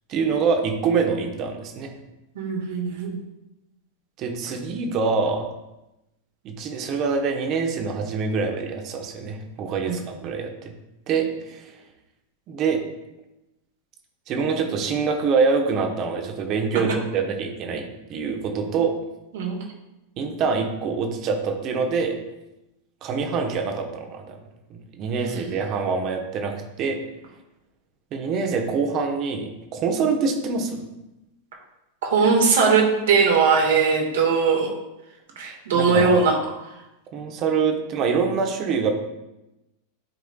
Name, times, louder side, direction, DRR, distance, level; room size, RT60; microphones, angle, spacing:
voice 1, 0.1-1.9 4.2-5.4 6.4-10.7 11.1-11.7 12.5-12.8 14.3-18.9 20.2-22.1 23.0-24.4 24.7-27.0 28.1-30.8 35.7-36.1 37.1-38.9, right 5 dB, 35° right, 4 dB, 1.1 m, -25 dB
voice 2, 2.4-3.2 9.8-10.0 19.3-19.6 25.3-25.5 32.1-34.7 35.4-36.7, right 5 dB, 60° right, 0 dB, 1.8 m, -20 dB
11.5 x 4.9 x 2.4 m, 0.93 s
figure-of-eight pair, 90°, 0 cm